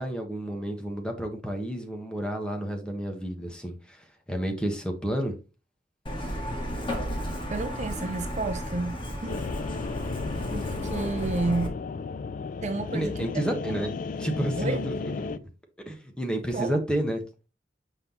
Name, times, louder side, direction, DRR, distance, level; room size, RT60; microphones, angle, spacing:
voice 1, 0.0-5.3 12.9-13.9 14.2-14.9 15.8-17.2, right 1 dB, 5° left, 1.2 m, -30 dB
Truck, 6.1-11.7, equal, 30° left, 1.5 m, -33 dB
voice 2, 7.5-9.4 10.5-11.8 12.6-13.8 14.6-14.8 16.5-16.8, right 3 dB, 40° right, 0.5 m, -31 dB
sound 1, 9.3-15.4, left 4 dB, 50° left, 0.4 m, -34 dB
6.0 x 5.4 x 2.9 m
head